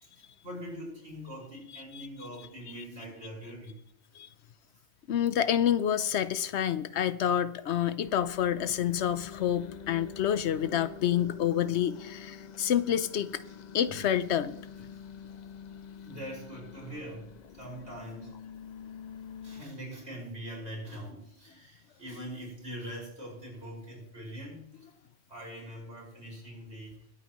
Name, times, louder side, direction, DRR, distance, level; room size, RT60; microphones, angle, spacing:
voice 1, 0.0-3.8 13.9-14.0 14.8-14.9 16.0-18.4 19.4-24.9 25.3-27.0, equal, 80° right, 5.9 m, -43 dB
voice 2, 5.1-13.4 13.7-14.6, left 10 dB, 85° left, 1.0 m, -28 dB
sound 1, 8.0-19.6, left 7 dB, 50° left, 0.6 m, -46 dB
22.0 x 8.8 x 3.1 m
omnidirectional pair, 1.1 m